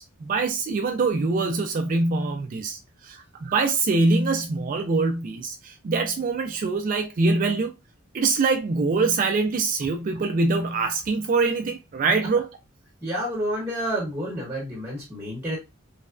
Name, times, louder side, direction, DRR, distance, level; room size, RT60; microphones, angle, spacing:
voice 1, 0.0-7.7 8.1-12.5, right 3 dB, 40° right, 0.3 m, -24 dB
voice 2, 13.0-15.6, equal, 15° right, 1.1 m, -29 dB
3.1 x 2.2 x 2.4 m
head